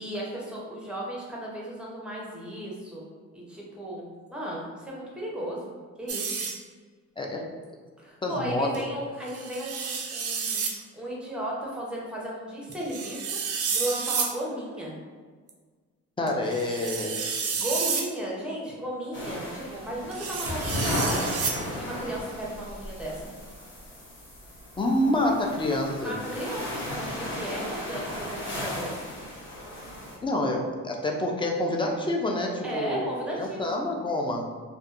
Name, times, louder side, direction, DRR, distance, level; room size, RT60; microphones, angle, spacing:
voice 1, 0.0-3.1 3.3-5.7 6.0-6.4 8.0-14.9 17.5-21.4 21.8-23.3 26.0-29.0 32.6-33.7, right 1 dB, 5° right, -4 dB, 0.7 m, -35 dB
sound 1, 6.1-6.6 8.7-8.8 9.3-10.8 12.7-14.3 15.5-15.6 16.3-18.1 20.1-21.6, right 5 dB, 50° right, 0.4 m, -30 dB
voice 2, 7.2-7.5 8.2-8.7 16.2-17.2 24.8-26.2 30.2-34.4, left 1 dB, 15° left, 1 dB, 0.3 m, -27 dB
sound 2, 19.1-30.2, left 1 dB, 40° left, 0.8 m, -35 dB
2.5 x 2.2 x 2.4 m, 1.5 s
cardioid pair, 90°, 30 cm